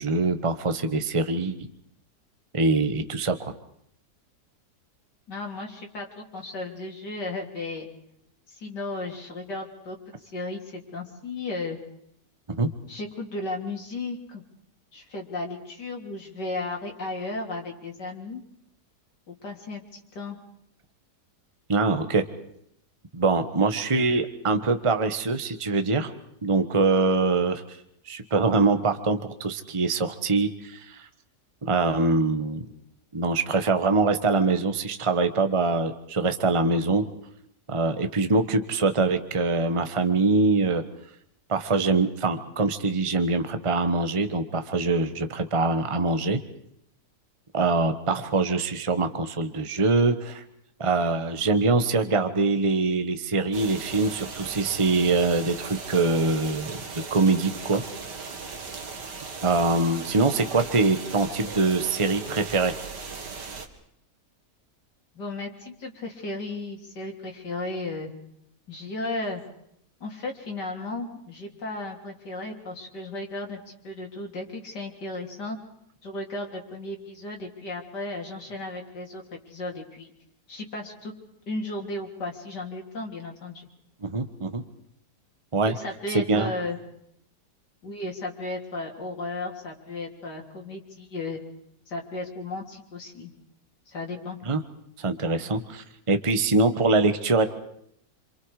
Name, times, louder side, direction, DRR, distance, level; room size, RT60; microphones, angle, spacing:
voice 1, 0.0-1.6 2.5-3.5 12.6-12.7 21.7-22.2 23.1-26.1 26.4-27.8 28.1-31.1 31.6-32.6 33.1-37.0 37.7-40.8 41.5-46.4 47.5-50.4 50.8-56.8 57.1-57.8 59.4-62.7 84.0-84.6 85.5-85.8 86.1-86.5 94.4-94.6 95.0-97.4, right 3 dB, 20° right, 8 dB, 1.2 m, -24 dB
voice 2, 5.3-7.9 8.5-11.8 12.9-14.4 14.9-18.4 19.3-20.4 65.2-68.1 68.7-69.4 70.0-75.6 76.0-80.1 80.5-81.1 81.5-83.7 85.8-86.8 87.8-91.4 91.9-93.3 93.9-94.4, left 2 dB, 80° left, 0 dB, 4.0 m, -35 dB
sound 1, 53.5-63.7, right 4 dB, 80° right, 2.6 m, -38 dB
27.5 x 26.5 x 4.9 m, 0.73 s
omnidirectional pair, 1.8 m